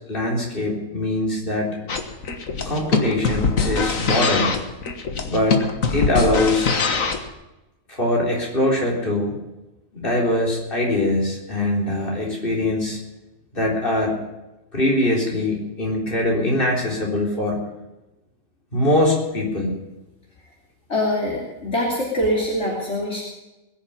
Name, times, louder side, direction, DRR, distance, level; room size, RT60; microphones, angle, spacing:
voice 1, 0.1-1.8 2.7-4.5 5.3-5.6 5.9-6.7 7.9-9.4 9.9-13.0 13.5-14.2 14.7-17.7 18.7-19.7, left 1 dB, 40° left, -2 dB, 4.1 m, -22 dB
sound 1, 1.9-7.3, left 4 dB, 80° left, 1.8 m, -23 dB
voice 2, 20.9-23.2, left 1 dB, 55° left, -4 dB, 3.4 m, -23 dB
20.5 x 7.4 x 8.5 m, 1.0 s
omnidirectional pair, 1.4 m